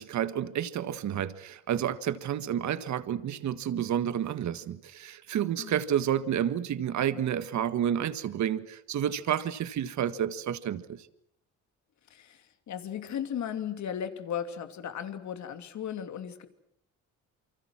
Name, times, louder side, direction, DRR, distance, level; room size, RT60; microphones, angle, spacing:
voice 1, 0.0-11.1, right 10 dB, 70° right, 1.7 m, -30 dB
voice 2, 12.1-16.5, left 9 dB, 70° left, 2.8 m, -36 dB
28.5 x 25.0 x 6.2 m
cardioid pair, 90°, 30 cm